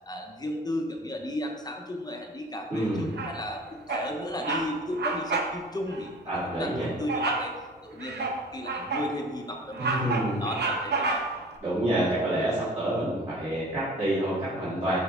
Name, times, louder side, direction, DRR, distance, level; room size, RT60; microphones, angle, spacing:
voice 1, 0.1-6.1 6.4-7.5 7.8-11.2, left 1 dB, 25° left, 2 dB, 0.7 m, -34 dB
voice 2, 2.7-3.2 6.3-6.9 9.8-10.4 11.6-15.0, right 1 dB, 40° right, -13 dB, 2.5 m, -28 dB
Bird vocalization bird call bird song, 3.1-3.5 3.9-4.1 4.4-4.7 5.0-5.5 5.9-6.0 7.1-7.5 8.0-9.1 9.5-11.5, right 3 dB, 80° right, 0.9 m, -29 dB
10.5 x 4.6 x 3.5 m, 1.4 s
wide cardioid pair, 175°, 17 cm